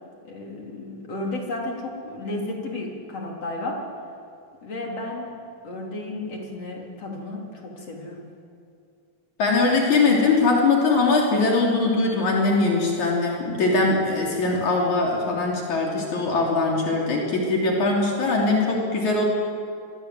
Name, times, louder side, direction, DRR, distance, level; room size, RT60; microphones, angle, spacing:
voice 1, 0.2-3.9 4.6-5.4 5.6-8.3, left 2 dB, 55° left, -1 dB, 4.9 m, -33 dB
voice 2, 9.4-19.2, left 3 dB, 75° left, -2 dB, 4.7 m, -21 dB
27.0 x 22.5 x 7.9 m, 2.4 s
omnidirectional pair, 3.4 m